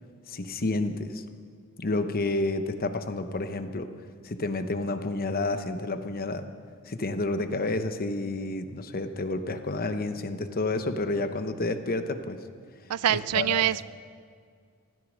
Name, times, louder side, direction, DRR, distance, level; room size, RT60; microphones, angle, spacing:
voice 1, 0.3-1.2 1.8-3.9 4.2-6.5 6.8-12.4 13.3-13.6, left 2 dB, 40° left, 9 dB, 0.9 m, -30 dB
voice 2, 12.9-13.8, right 11 dB, 85° right, 18 dB, 0.4 m, -25 dB
15.5 x 13.5 x 6.3 m, 2.1 s
head